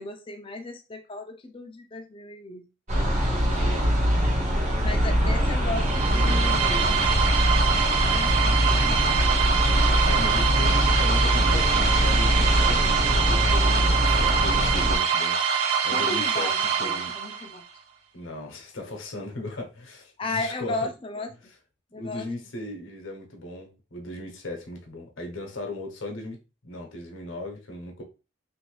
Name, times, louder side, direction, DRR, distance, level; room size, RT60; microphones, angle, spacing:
voice 1, 0.0-2.7 2.9-3.4 3.8-3.9 4.8-6.8 8.1-9.0 15.9-17.6 20.2-21.3 21.9-22.3, left 2 dB, 25° left, 0.4 m, -35 dB
sound 1, 2.9-15.0, equal, 35° right, 0.7 m, -23 dB
voice 2, 3.3-4.1 4.5-5.0 10.0-15.4 15.8-17.1 18.1-20.9 21.9-28.0, left 1 dB, 65° left, 0.8 m, -37 dB
sound 2, 5.7-17.6, right 6 dB, 85° right, 0.6 m, -25 dB
3.1 x 2.5 x 3.1 m
head